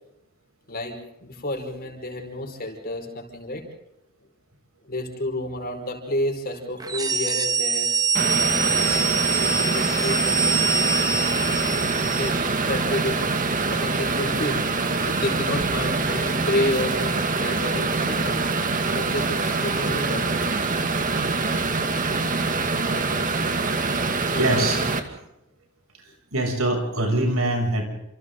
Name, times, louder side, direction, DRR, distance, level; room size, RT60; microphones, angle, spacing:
voice 1, 0.7-3.7 4.9-7.9 8.8-11.3 12.1-12.4 12.7-14.6 15.1-18.4 18.9-20.5 24.2-24.7, left 1 dB, 45° left, 3 dB, 5.0 m, -30 dB
sound 1, 6.8-12.5, right 5 dB, 20° right, 1.4 m, -24 dB
sound 2, 8.1-25.0, right 3 dB, 40° right, 2.2 m, -24 dB
voice 2, 24.2-24.8 26.3-27.8, right 1 dB, 85° right, 3 dB, 7.1 m, -23 dB
29.5 x 28.0 x 3.9 m, 0.84 s
head